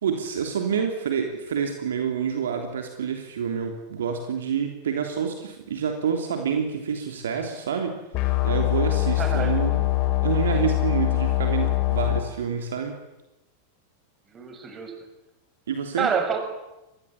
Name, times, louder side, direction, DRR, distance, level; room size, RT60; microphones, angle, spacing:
voice 1, 0.0-9.8 10.2-13.0 15.7-16.1, right 7 dB, 65° right, 4 dB, 3.4 m, -28 dB
sound 1, 8.1-12.2, left 17 dB, 40° left, 4.4 m, -23 dB
voice 2, 9.2-9.5 14.3-14.9 16.0-16.4, right 6 dB, 25° right, 6 dB, 6.8 m, -27 dB
28.0 x 21.0 x 8.9 m, 0.98 s
figure-of-eight pair, 90°, 0 cm